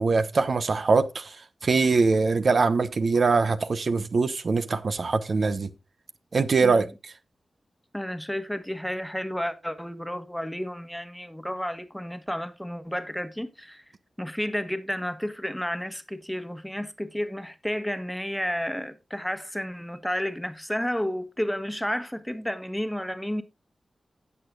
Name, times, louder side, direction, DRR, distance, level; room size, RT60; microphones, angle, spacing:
voice 1, 0.0-1.3 1.6-5.7 6.3-7.1, right 4 dB, 60° right, 0.9 m, -23 dB
voice 2, 7.9-13.8 14.2-23.4, equal, 5° left, 1.3 m, -31 dB
17.0 x 6.6 x 2.5 m
wide cardioid pair, 85°, 0 cm